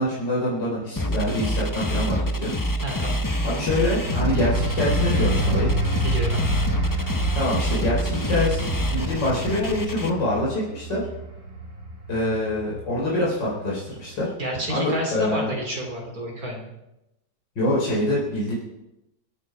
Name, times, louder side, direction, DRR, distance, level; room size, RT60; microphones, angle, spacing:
voice 1, 0.0-2.5 3.4-5.7 7.3-11.1 12.1-14.3 14.7-15.5 17.6-18.5, left 1 dB, 80° left, -6 dB, 4.4 m, -25 dB
sound 1, 1.0-10.1, equal, 20° left, 0.6 m, -26 dB
voice 2, 2.8-3.2 6.0-6.4 14.4-16.6, right 1 dB, 55° right, 0 dB, 3.4 m, -29 dB
sound 2, 3.9-14.2 14.6-14.9, right 1 dB, 70° right, 4.7 m, -29 dB
27.0 x 9.0 x 4.9 m, 0.91 s
omnidirectional pair, 1.9 m